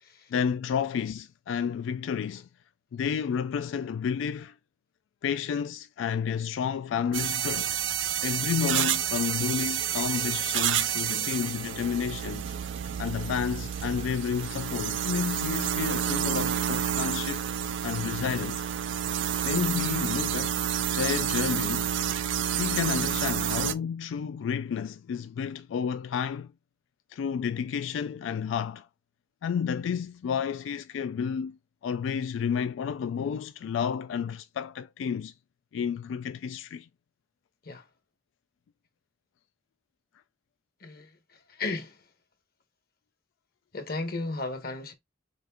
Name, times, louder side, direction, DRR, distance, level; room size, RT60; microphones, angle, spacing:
voice 1, 0.3-2.5 2.9-4.5 5.2-7.8 8.2-12.5 13.0-17.4 17.8-18.6 19.4-20.6 20.9-21.9 22.6-26.5 27.1-28.9 29.4-31.6 31.8-35.3 35.7-36.9, left 7 dB, 85° left, 0.3 m, -31 dB
sound 1, 7.1-23.7, right 9 dB, 80° right, 0.5 m, -29 dB
sound 2, 8.9-20.3, right 4 dB, 35° right, 0.5 m, -49 dB
voice 2, 40.8-41.2 41.5-42.0 43.7-44.9, left 3 dB, 55° left, 1.0 m, -34 dB
4.9 x 2.5 x 3.5 m
head